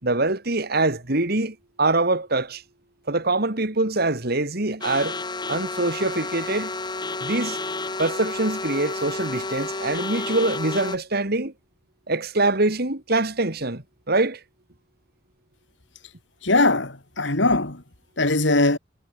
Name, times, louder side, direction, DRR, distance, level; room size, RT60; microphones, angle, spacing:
voice 1, 0.0-2.6 3.1-5.2 5.5-6.7 7.2-7.6 8.0-11.5 12.1-14.4, right 2 dB, 55° right, 2.7 m, -24 dB
sound 1, 4.8-11.0, left 3 dB, 25° left, 3.2 m, -31 dB
voice 2, 16.4-17.8 18.2-18.8, left 2 dB, 70° left, 3.6 m, -20 dB
head